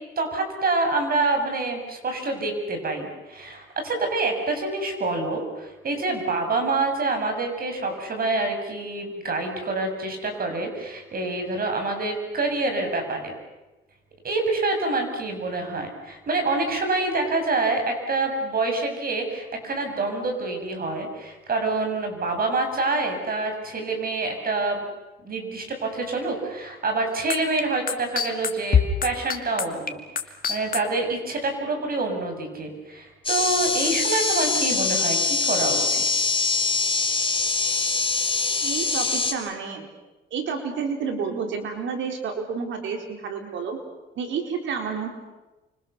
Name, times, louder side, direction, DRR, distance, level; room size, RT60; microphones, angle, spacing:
voice 1, 0.2-13.3 14.2-24.8 25.2-36.0, right 3 dB, 50° right, 4 dB, 7.5 m, -27 dB
sound 1, 27.3-30.8, left 7 dB, 45° left, 2.4 m, -22 dB
sound 2, 33.2-39.3, left 4 dB, 25° left, 4.1 m, -23 dB
voice 2, 38.6-39.9 40.3-43.8 44.2-45.1, right 6 dB, 75° right, 4 dB, 4.1 m, -30 dB
29.5 x 25.5 x 7.0 m, 1.1 s
cardioid pair, 90°, 20 cm